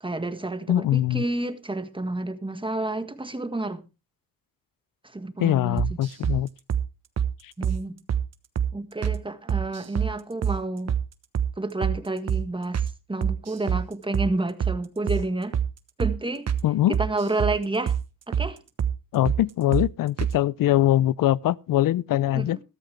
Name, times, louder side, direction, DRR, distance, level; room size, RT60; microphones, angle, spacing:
voice 1, 0.0-3.8 5.0-6.0 7.6-8.0 8.7-10.9 11.6-15.6 16.0-16.5 16.9-18.0 18.3-18.6 22.3-22.6, right 2 dB, 15° right, 1.6 m, -30 dB
voice 2, 0.7-1.2 5.4-6.5 7.4-7.5 16.6-17.0 19.1-22.6, left 13 dB, 65° left, 0.6 m, -22 dB
sound 1, 5.8-6.4 6.7-6.9 7.2-7.3 7.6-7.8 8.1-8.2 8.6-8.7 9.0-9.2 9.5-10.1 10.4-10.6 10.9-11.0 11.3-11.5 11.8-12.0 12.3-12.4 12.7-12.9 13.2-13.8 14.1-14.3 14.6-14.8 15.1-15.2 15.5-15.7 16.0-16.2 16.5-16.6 16.9-17.6 17.9-18.0 18.3-18.5 18.8-18.9 19.2-19.4 19.7-19.9 20.2-20.3, right 8 dB, 45° right, 1.2 m, -25 dB
13.5 x 13.5 x 3.4 m
cardioid pair, 75°, 36 cm